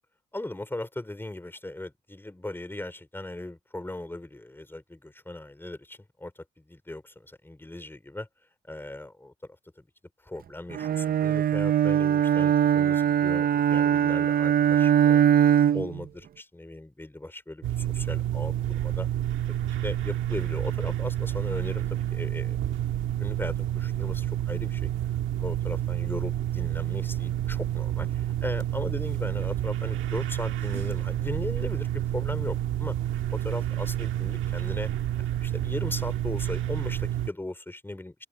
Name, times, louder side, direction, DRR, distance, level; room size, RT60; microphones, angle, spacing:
voice 1, 0.3-8.3 8.7-9.3 9.8-9.9 10.2-15.2 15.7-19.1 19.5-24.9 25.4-33.0 33.3-34.9 35.3-38.1, left 1 dB, 10° left, 3.6 m, -38 dB
Bowed string instrument, 10.7-16.0, right 9 dB, 50° right, 0.7 m, -21 dB
sound 1, 17.6-37.3, right 12 dB, 80° right, 1.6 m, -29 dB
open air
cardioid pair, 90°, 20 cm